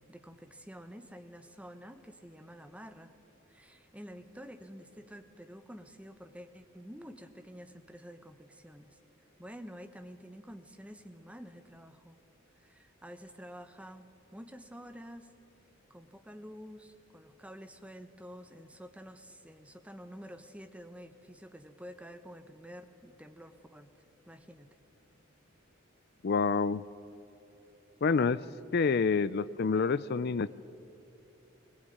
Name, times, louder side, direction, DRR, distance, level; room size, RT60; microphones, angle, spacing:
voice 1, 0.0-3.1 3.5-9.0 9.4-12.2 12.6-15.3 15.9-23.9 24.3-24.7, equal, 5° right, 8 dB, 1.2 m, -49 dB
voice 2, 26.2-26.8 28.0-28.4 28.7-30.5, left 5 dB, 50° left, 16 dB, 0.4 m, -27 dB
21.0 x 20.0 x 9.4 m, 2.9 s
head